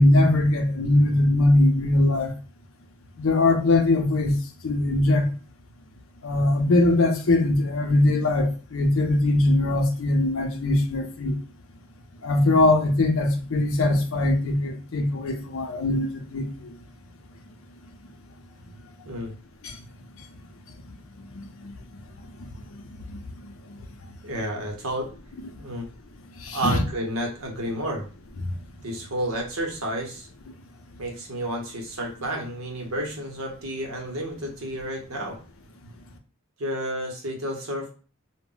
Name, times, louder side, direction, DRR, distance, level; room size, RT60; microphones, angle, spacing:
voice 1, 0.0-2.3 3.2-4.4 4.6-5.3 6.2-11.4 12.2-16.7 19.6-19.8 21.3-21.7 22.7-22.8 23.1-23.2 26.4-26.8, left 2 dB, 75° left, 0.5 m, -21 dB
voice 2, 24.2-25.1 25.6-25.9 26.5-28.1 28.8-30.3 31.0-35.4 36.6-37.9, right 1 dB, 80° right, 0.8 m, -31 dB
2.1 x 2.0 x 3.7 m
head